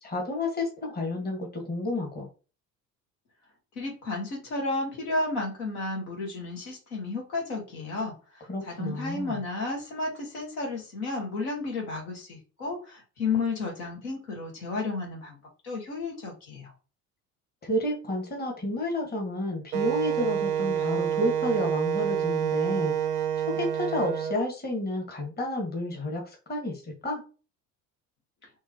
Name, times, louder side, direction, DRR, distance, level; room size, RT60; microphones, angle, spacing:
voice 1, 0.0-2.3 8.5-9.4 17.6-22.9 23.5-27.2, left 1 dB, 20° left, 1 dB, 1.5 m, -30 dB
voice 2, 3.7-15.4 15.6-16.7, left 3 dB, 65° left, -1 dB, 1.7 m, -32 dB
Wind instrument woodwind instrument, 19.7-24.3, right 9 dB, 85° right, 0.6 m, -28 dB
4.5 x 3.1 x 2.9 m, 0.34 s
figure-of-eight pair, 60°, 46 cm